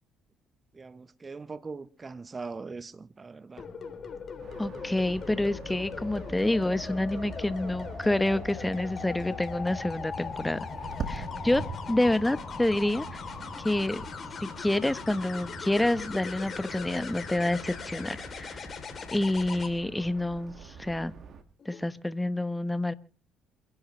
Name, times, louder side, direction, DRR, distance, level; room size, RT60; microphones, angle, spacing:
voice 1, 0.7-3.7, right 4 dB, 30° right, 1.2 m, -41 dB
sound 1, 3.6-19.7 21.6-21.9, left 6 dB, 45° left, 3.3 m, -39 dB
sound 2, 4.4-21.4, right 5 dB, 50° right, 1.9 m, -45 dB
voice 2, 4.6-10.7 11.1-11.6 11.9-13.2 13.6-14.0 14.4-18.6 19.1-21.1 21.6-22.9, left 1 dB, 10° left, 1.1 m, -28 dB
28.5 x 11.0 x 3.3 m
hypercardioid pair, 55°, 0 cm